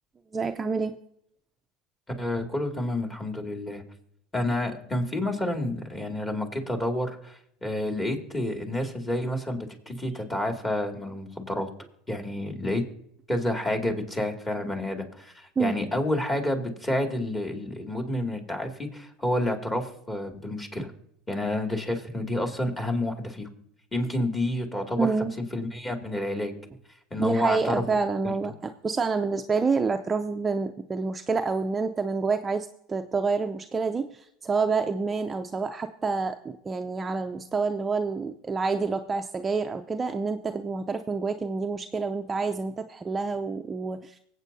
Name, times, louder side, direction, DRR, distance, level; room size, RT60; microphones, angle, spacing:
voice 1, 0.3-1.0 15.6-15.8 20.8-20.9 25.0-25.3 27.2-34.1 34.4-44.1, right 4 dB, 20° right, 6 dB, 0.5 m, -28 dB
voice 2, 2.2-3.8 4.3-11.7 12.1-12.8 13.3-20.9 21.3-23.5 23.9-26.5 27.1-27.9, left 1 dB, 15° left, 3 dB, 2.3 m, -29 dB
24.5 x 8.3 x 2.7 m, 0.72 s
supercardioid pair, 100°, 0 cm